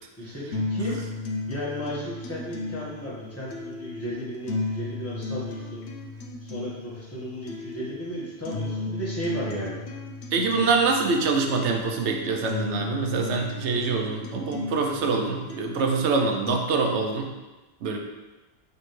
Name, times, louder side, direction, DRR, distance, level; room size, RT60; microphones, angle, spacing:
voice 1, 0.2-1.0 1.5-5.8 6.4-9.8 10.6-10.7, equal, 15° left, -8 dB, 1.3 m, -34 dB
sound 1, 0.5-16.5, left 3 dB, 75° left, 0.9 m, -35 dB
voice 2, 10.3-17.3 17.8-18.0, right 4 dB, 85° right, 3 dB, 0.9 m, -25 dB
4.8 x 3.4 x 3.2 m, 1.2 s
omnidirectional pair, 1.2 m